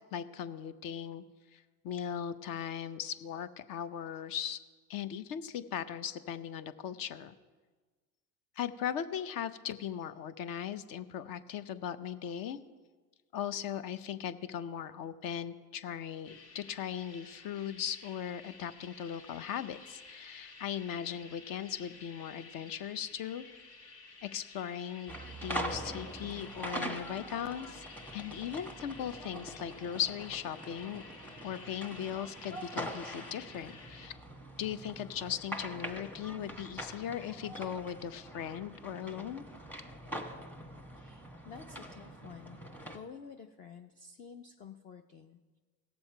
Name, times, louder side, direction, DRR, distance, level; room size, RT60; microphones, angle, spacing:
voice 1, 0.1-1.2 1.5-4.6 4.9-7.3 8.6-12.6 13.3-23.4 24.2-25.1 25.4-27.8 28.1-31.0 31.4-34.1 34.6-39.4, left 9 dB, 45° left, 13 dB, 0.8 m, -38 dB
sound 1, 16.2-34.1, left 3 dB, 80° left, 2.2 m, -53 dB
sound 2, 25.1-43.0, right 1 dB, 5° left, 1.2 m, -43 dB
voice 2, 28.0-28.5 41.0-42.6 42.8-45.6, left 6 dB, 20° left, 6 dB, 0.3 m, -51 dB
18.0 x 7.0 x 4.5 m, 1.4 s
supercardioid pair, 100°, 49 cm